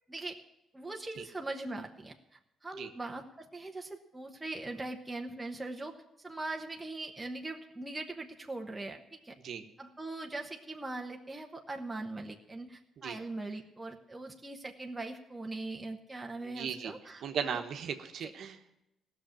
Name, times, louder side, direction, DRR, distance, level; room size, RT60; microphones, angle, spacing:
voice 1, 0.7-2.2 2.6-6.0 6.2-9.3 9.8-17.6 18.2-18.3, right 2 dB, 15° right, 2 dB, 1.1 m, -41 dB
voice 2, 16.4-16.9 17.2-18.7, right 7 dB, 70° right, 6 dB, 1.2 m, -37 dB
15.5 x 6.7 x 8.7 m, 0.91 s
cardioid pair, 90°, 0 cm